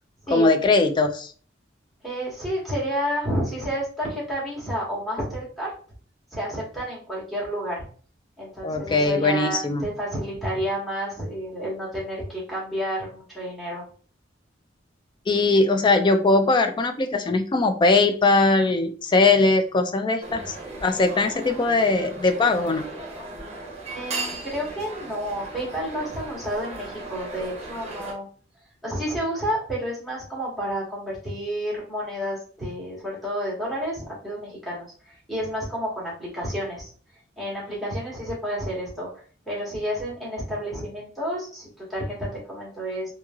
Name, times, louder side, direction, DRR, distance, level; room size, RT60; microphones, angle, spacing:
voice 1, 0.3-1.3 8.6-9.8 15.3-20.5 20.8-22.9, left 3 dB, 25° left, 7 dB, 0.3 m, -20 dB
voice 2, 2.0-5.7 6.3-7.8 8.4-13.8 23.9-28.3 28.8-36.9 37.4-39.1 39.4-43.1, equal, ahead, -6 dB, 1.3 m, -30 dB
sound 1, 20.2-28.1, right 2 dB, 35° right, 0.8 m, -37 dB
3.1 x 2.7 x 2.3 m, 0.42 s
head